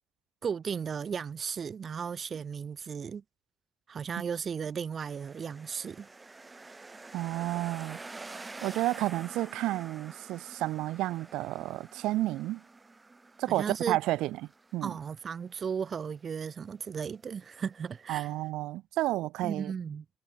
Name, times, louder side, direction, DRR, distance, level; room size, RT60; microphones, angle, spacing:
voice 1, 0.4-3.2 3.9-6.1 13.5-14.0 14.8-18.3 19.4-20.1, right 6 dB, 45° right, 0.5 m, -35 dB
sound 1, 5.0-18.2, right 3 dB, 20° right, 1.6 m, -49 dB
voice 2, 7.1-8.0 8.3-12.6 13.4-14.3 14.7-14.9 18.1-19.7, right 16 dB, 85° right, 0.9 m, -31 dB
cardioid pair, 105°, 0 cm